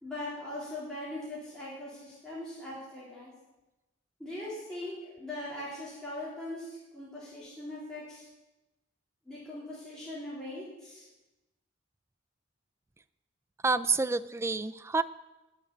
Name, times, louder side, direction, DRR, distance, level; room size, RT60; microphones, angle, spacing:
voice 1, 0.0-3.3 4.2-8.3 9.2-11.1, left 1 dB, 5° left, -10 dB, 3.8 m, -40 dB
voice 2, 13.6-15.0, right 3 dB, 15° right, 11 dB, 0.4 m, -28 dB
10.5 x 7.3 x 8.4 m, 1.0 s
head